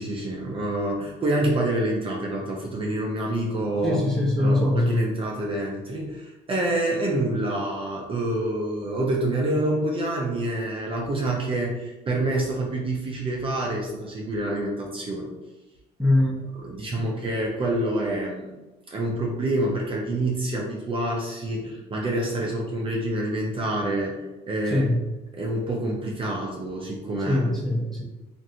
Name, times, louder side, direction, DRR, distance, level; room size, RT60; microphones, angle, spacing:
voice 1, 0.0-4.0 4.4-15.3 16.5-18.5 18.9-24.9 25.4-27.5, right 1 dB, 30° right, -2 dB, 0.5 m, -27 dB
voice 2, 3.8-5.1 16.0-16.4 24.7-25.0 27.3-28.0, left 1 dB, 5° left, -3 dB, 0.7 m, -22 dB
3.1 x 2.5 x 2.7 m, 1.1 s
cardioid pair, 110°, 17 cm